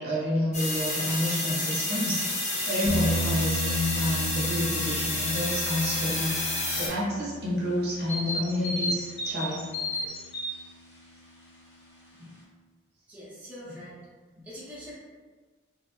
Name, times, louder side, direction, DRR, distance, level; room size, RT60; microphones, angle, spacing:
voice 1, 0.0-6.3 6.7-9.7, left 1 dB, 55° right, -5 dB, 0.7 m, -29 dB
sound 1, 0.5-6.9, left 2 dB, 35° left, 0.6 m, -30 dB
sound 2, 2.8-11.2, equal, 85° left, 0.5 m, -36 dB
sound 3, 8.1-10.5, left 1 dB, 65° left, 0.9 m, -32 dB
voice 2, 13.1-14.0 14.4-14.9, equal, 10° right, -10 dB, 0.6 m, -43 dB
2.3 x 2.0 x 3.0 m, 1.4 s
head